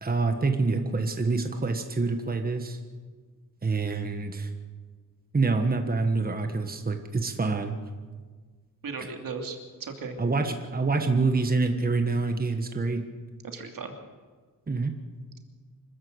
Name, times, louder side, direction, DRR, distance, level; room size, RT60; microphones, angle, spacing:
voice 1, 0.0-2.8 3.6-4.5 5.3-7.8 9.0-9.1 10.2-13.0 14.7-14.9, right 3 dB, 25° right, 5 dB, 1.5 m, -26 dB
voice 2, 8.8-10.1 13.5-13.9, right 4 dB, 75° right, 4 dB, 2.8 m, -36 dB
26.0 x 13.5 x 8.2 m, 1.5 s
wide cardioid pair, 135°, 34 cm